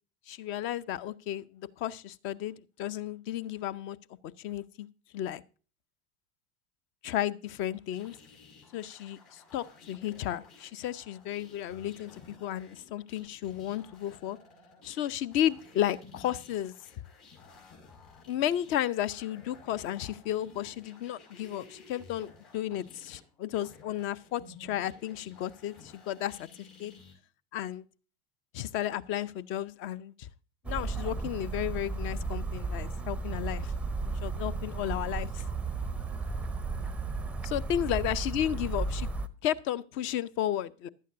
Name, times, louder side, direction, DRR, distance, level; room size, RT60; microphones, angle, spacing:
voice 1, 0.3-4.0 4.4-4.9 5.1-5.4 7.0-8.2 8.7-14.4 14.8-16.7 18.3-22.3 22.5-26.9 27.5-27.8 28.5-30.3 30.7-33.7 34.1-35.4 37.4-39.1 39.4-40.9, left 11 dB, 35° left, 0.6 m, -33 dB
sound 1, 7.9-27.1, left 4 dB, 55° left, 5.3 m, -55 dB
sound 2, 30.6-39.3, right 3 dB, 5° right, 0.6 m, -34 dB
15.5 x 11.5 x 2.6 m
figure-of-eight pair, 80°, 33 cm